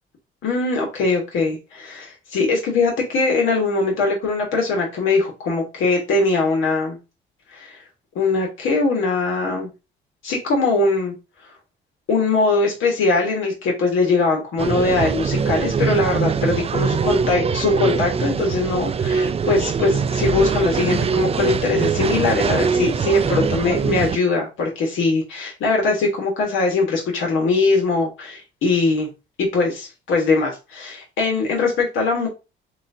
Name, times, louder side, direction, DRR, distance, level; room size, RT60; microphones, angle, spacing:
voice 1, 0.4-7.0 7.5-7.8 8.1-9.7 10.2-11.1 12.1-29.1 29.4-32.3, left 3 dB, 80° left, 0 dB, 1.4 m, -21 dB
sound 1, 14.6-24.2, right 6 dB, 30° right, 0.4 m, -22 dB
6.1 x 2.5 x 2.7 m, 0.28 s
cardioid pair, 90°, 20 cm